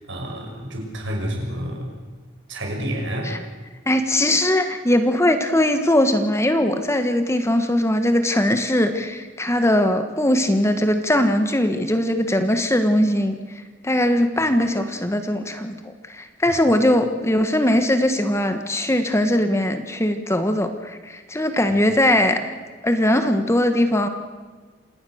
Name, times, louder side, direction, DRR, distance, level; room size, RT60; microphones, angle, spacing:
voice 1, 0.1-1.9 2.5-3.3 16.5-16.6, equal, 65° right, 1 dB, 6.5 m, -29 dB
voice 2, 3.9-13.4 13.8-22.4 22.8-24.1, left 1 dB, 15° left, 7 dB, 1.4 m, -20 dB
27.5 x 18.5 x 6.5 m, 1.4 s
head